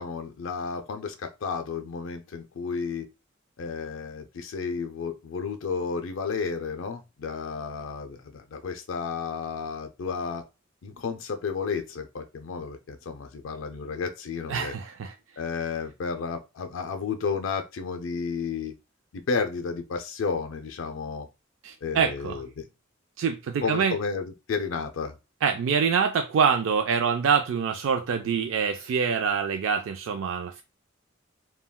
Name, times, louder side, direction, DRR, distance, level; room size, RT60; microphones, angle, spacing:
voice 1, 0.0-3.1 3.6-10.5 10.8-14.7 15.4-18.7 19.1-21.3 21.8-22.6 23.6-25.1, left 5 dB, 70° left, 6 dB, 0.4 m, -32 dB
voice 2, 14.5-15.1 21.6-22.4 23.2-24.0 25.4-30.6, right 6 dB, 70° right, 5 dB, 0.3 m, -25 dB
3.5 x 2.2 x 2.2 m, 0.27 s
head